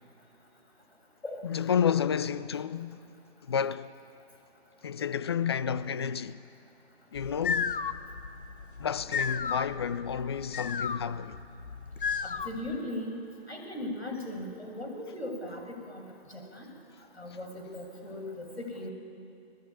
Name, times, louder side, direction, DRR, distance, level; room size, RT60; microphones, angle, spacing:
voice 1, 1.4-3.0 3.5-3.9 4.8-6.4 7.1-7.8 8.8-11.4, left 7 dB, 25° left, 0.6 m, -30 dB
sound 1, 7.2-12.8, left 6 dB, 55° left, 1.2 m, -34 dB
voice 2, 12.4-13.1 13.5-15.6 15.9-16.0 16.3-16.7 17.2-18.9, left 1 dB, 80° left, 7.4 m, -38 dB
29.5 x 20.0 x 9.9 m
figure-of-eight pair, 140°, 32 cm